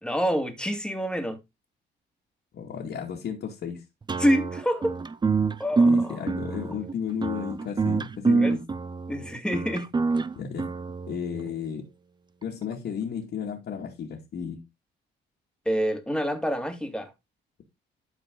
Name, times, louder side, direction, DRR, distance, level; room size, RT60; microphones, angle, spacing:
voice 1, 0.0-1.4 4.2-5.0 5.6-6.2 8.4-8.5 9.1-9.9 15.7-17.1, equal, 5° left, 2.2 m, -27 dB
voice 2, 2.5-3.8 5.9-8.6 10.4-10.7 11.1-11.9 12.4-14.6, left 7 dB, 65° left, 2.5 m, -33 dB
sound 1, 4.1-11.5, right 4 dB, 20° right, 0.6 m, -26 dB
12.0 x 4.6 x 3.9 m
cardioid pair, 90°, 20 cm